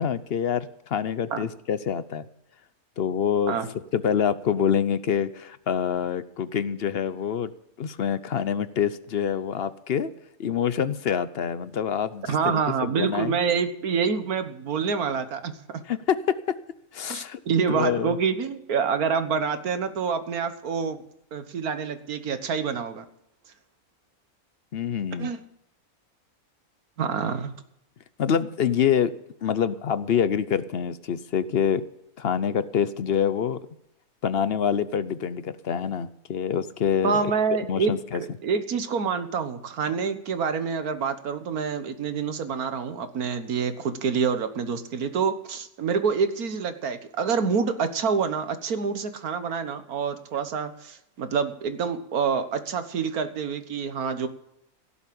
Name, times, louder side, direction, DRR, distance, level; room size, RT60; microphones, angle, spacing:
voice 1, 0.0-2.2 3.0-3.6 3.9-7.5 7.8-10.1 10.4-13.4 15.9-16.4 16.9-17.4 17.7-18.2 24.7-25.3 28.2-29.1 29.4-31.8 32.2-33.6 34.2-37.3 37.7-38.2, left 8 dB, 55° left, 14 dB, 0.8 m, -26 dB
voice 2, 12.3-15.8 17.1-21.0 21.3-23.0 25.2-25.4 27.0-27.5 37.0-54.3, right 6 dB, 85° right, 10 dB, 1.7 m, -27 dB
17.0 x 7.2 x 8.6 m, 0.85 s
omnidirectional pair, 1.5 m